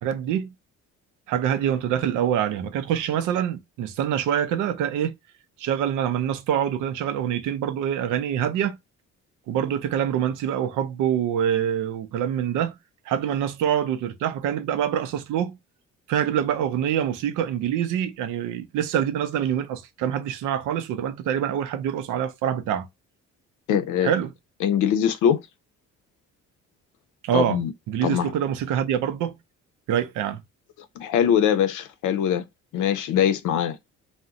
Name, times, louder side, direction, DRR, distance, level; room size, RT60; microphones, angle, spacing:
voice 1, 0.0-0.5 1.3-5.2 5.6-8.8 9.5-12.8 13.1-15.6 16.1-22.9 24.0-24.3 27.2-27.6 27.9-29.4 29.9-30.4, right 9 dB, 90° right, 0.6 m, -25 dB
voice 2, 23.7-24.1 24.6-25.4 27.3-27.7 28.0-28.3 31.0-32.4 32.7-33.8, left 9 dB, 85° left, 0.6 m, -22 dB
2.5 x 2.1 x 3.7 m
cardioid pair, 90°, 30 cm